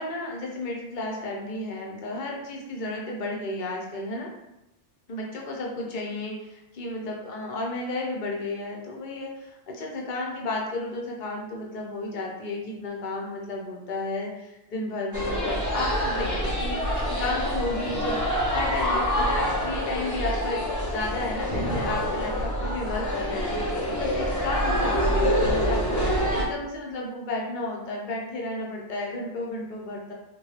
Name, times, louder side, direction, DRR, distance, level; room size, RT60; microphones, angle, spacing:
voice 1, 0.0-4.3 5.1-16.8 17.1-30.1, left 2 dB, 50° left, -2 dB, 0.8 m, -33 dB
sound 1, 15.1-26.4, equal, 20° left, 0.5 m, -26 dB
3.8 x 2.3 x 3.2 m, 0.91 s
omnidirectional pair, 1.2 m